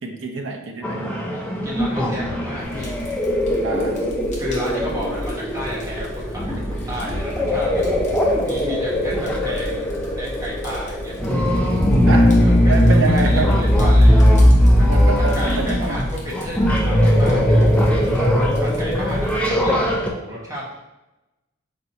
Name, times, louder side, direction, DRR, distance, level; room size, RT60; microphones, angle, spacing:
voice 1, 0.0-1.1 3.6-4.0 8.2-8.4 12.1-12.4 12.7-13.6 14.9-16.0 18.2-18.5, right 3 dB, 65° right, 2 dB, 0.7 m, -26 dB
sound 1, 0.8-20.1, equal, 5° left, 0.4 m, -19 dB
voice 2, 1.3-2.9 4.4-7.9 8.4-9.9 10.2-11.2 12.3-14.2 14.7-18.1 18.6-20.9, equal, 15° right, -6 dB, 1.0 m, -32 dB
Fire, 2.6-19.5, equal, 35° left, 1.1 m, -34 dB
4.5 x 4.3 x 2.6 m, 0.97 s
head